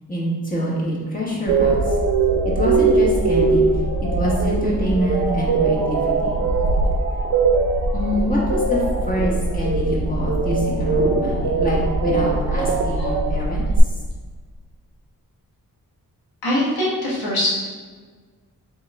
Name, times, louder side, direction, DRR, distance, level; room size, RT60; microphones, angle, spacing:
voice 1, 0.1-2.0 2.4-3.7 4.1-6.3 7.9-13.9, equal, 25° left, -5 dB, 1.3 m, -25 dB
sound 1, 1.5-13.8, right 3 dB, 70° right, 0.5 m, -20 dB
voice 2, 16.4-17.5, left 1 dB, 90° left, -6 dB, 1.3 m, -23 dB
3.6 x 3.0 x 3.3 m, 1.5 s
cardioid pair, 55°, 35 cm